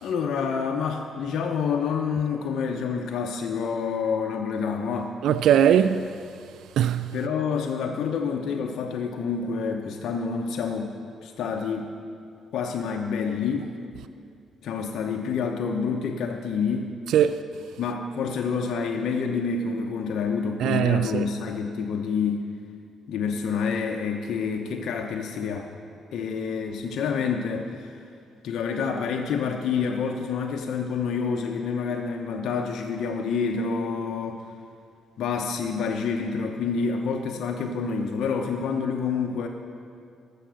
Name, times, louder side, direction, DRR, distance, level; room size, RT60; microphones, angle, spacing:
voice 1, 0.0-5.1 7.1-10.9 11.2-11.9 12.5-13.7 14.6-16.9 17.8-22.4 23.1-25.7 26.1-27.9 28.4-34.4 35.2-39.5, left 5 dB, 70° left, 0.8 m, -28 dB
voice 2, 5.2-6.1 6.8-7.1 17.1-17.4 20.6-21.2, right 9 dB, 80° right, 0.3 m, -20 dB
13.5 x 6.9 x 6.3 m
cardioid pair, 90°, 0 cm